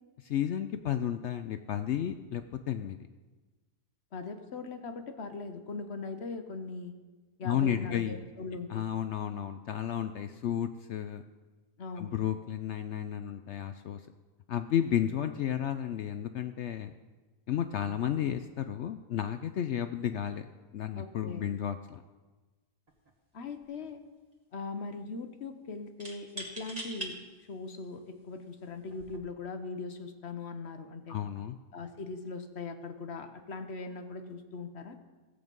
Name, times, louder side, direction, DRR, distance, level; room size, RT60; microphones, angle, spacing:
voice 1, 0.2-3.0 7.4-8.2 8.7-11.2 12.0-14.0 14.5-16.9 17.5-20.5 20.7-22.0 31.1-31.6, left 10 dB, 80° left, 9 dB, 0.6 m, -32 dB
voice 2, 4.1-6.9 7.4-8.8 11.8-12.1 20.9-21.5 23.3-24.0 24.5-27.2 27.5-31.2 31.7-35.0, left 4 dB, 50° left, 8 dB, 1.0 m, -40 dB
sound 1, 22.9-23.1 23.4-24.1 26.0-27.1 27.8-27.9 28.8-29.2, right 1 dB, 25° right, 1.6 m, -42 dB
16.5 x 7.9 x 5.3 m, 1.3 s
omnidirectional pair, 1.8 m